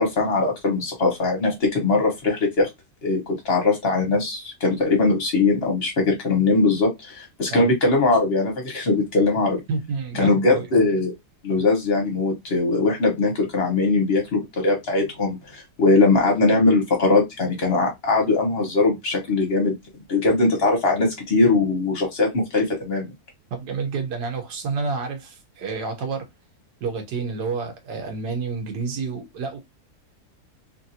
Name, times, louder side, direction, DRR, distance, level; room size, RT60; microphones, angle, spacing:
voice 1, 0.0-2.7 3.0-9.6 10.2-11.1 11.4-19.7 20.1-23.1, left 3 dB, 40° left, 1.3 m, -21 dB
voice 2, 9.7-10.7 23.5-26.3 26.8-29.6, right 4 dB, 90° right, 1.5 m, -29 dB
3.3 x 2.6 x 2.7 m
omnidirectional pair, 1.7 m